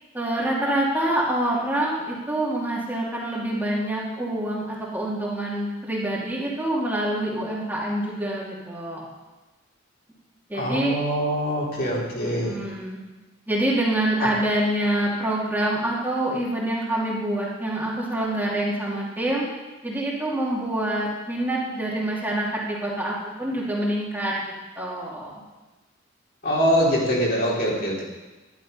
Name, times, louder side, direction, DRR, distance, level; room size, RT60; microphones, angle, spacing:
voice 1, 0.1-9.0 10.5-11.0 12.2-13.0 13.5-19.4 19.8-24.3 24.8-25.4, right 1 dB, 10° right, -5 dB, 2.4 m, -26 dB
voice 2, 10.6-12.6 26.4-28.0, equal, 55° left, -5 dB, 4.0 m, -23 dB
12.0 x 11.0 x 5.4 m, 1.1 s
head